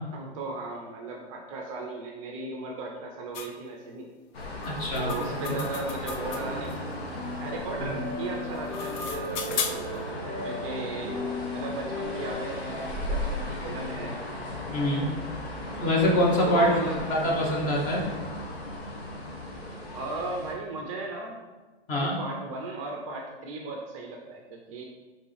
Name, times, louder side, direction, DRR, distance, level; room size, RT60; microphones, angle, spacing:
voice 1, 0.1-4.1 5.0-6.8 7.1-10.1 10.4-11.2 11.5-14.2 16.5-17.0 19.9-21.4 21.9-24.8, right 3 dB, 30° right, 1 dB, 0.5 m, -36 dB
sound 1, 3.3-3.5 4.6-6.7 8.4-10.0, left 5 dB, 45° left, 0.5 m, -35 dB
sound 2, 4.3-20.5, left 1 dB, 70° left, 1.2 m, -36 dB
voice 2, 4.6-5.1 7.8-7.9 14.7-15.1 15.8-16.7 17.1-18.0 21.9-22.2, equal, 25° left, -2 dB, 0.9 m, -24 dB
sound 3, 5.2-13.0, left 2 dB, 10° right, 0.9 m, -38 dB
3.8 x 3.7 x 3.2 m, 1.3 s
hypercardioid pair, 120°, 33 cm